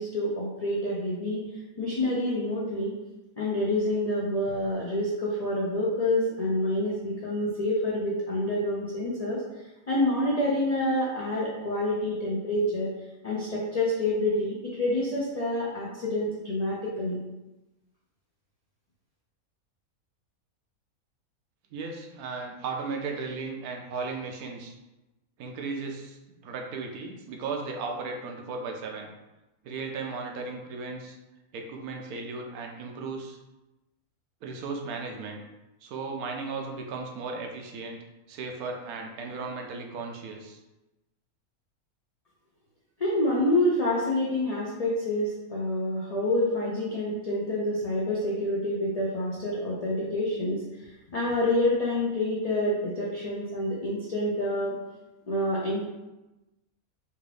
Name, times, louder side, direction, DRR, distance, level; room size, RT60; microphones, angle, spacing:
voice 1, 0.0-2.9 3.4-9.4 9.9-12.9 13.2-17.2 43.0-50.6 51.1-54.8 55.3-55.9, left 1 dB, 85° left, -6 dB, 0.3 m, -27 dB
voice 2, 21.7-24.7 25.4-29.1 29.6-31.2 31.5-33.4 34.4-35.4 35.8-38.0 38.3-40.6, right 4 dB, 90° right, 2 dB, 1.1 m, -36 dB
3.4 x 2.4 x 3.3 m, 1.0 s
omnidirectional pair, 1.5 m